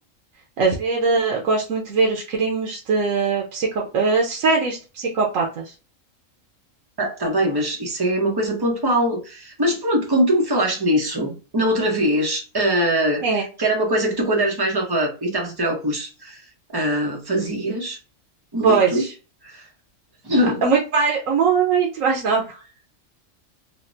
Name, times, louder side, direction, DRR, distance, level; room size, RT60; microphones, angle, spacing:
voice 1, 0.6-5.7 13.2-13.4 18.6-19.1 20.6-22.6, right 4 dB, 80° right, 1.1 m, -21 dB
voice 2, 7.0-13.2 13.6-16.4 16.7-18.0 18.5-19.0 19.5-19.6 20.2-20.6, equal, 20° right, 0.7 m, -22 dB
3.2 x 2.1 x 2.6 m
omnidirectional pair, 1.4 m